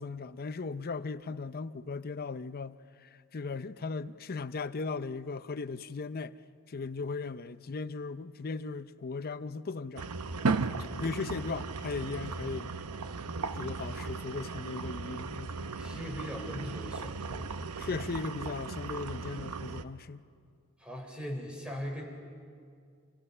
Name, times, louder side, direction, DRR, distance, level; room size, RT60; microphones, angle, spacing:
voice 1, 0.0-6.4 6.7-10.1 10.8-12.7 13.5-15.5 17.8-20.2, left 4 dB, 45° left, 0.6 m, -37 dB
sound 1, 10.0-19.8, right 4 dB, 85° right, 0.8 m, -36 dB
voice 2, 15.8-17.7 20.8-22.0, equal, 5° right, 4.1 m, -40 dB
29.0 x 27.0 x 5.5 m
head